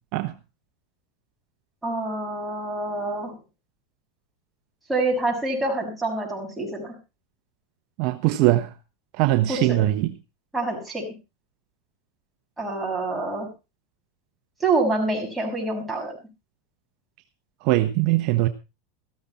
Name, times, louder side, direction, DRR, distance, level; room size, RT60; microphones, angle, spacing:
voice 1, 1.8-3.4 4.9-6.9 9.5-9.8 10.5-11.1 12.6-13.5 14.6-16.1, right 2 dB, 10° right, 6.6 m, -26 dB
voice 2, 8.0-8.7 9.2-10.1 17.6-18.5, right 16 dB, 55° right, 1.1 m, -21 dB
15.0 x 13.0 x 4.2 m
supercardioid pair, 120°, 0 cm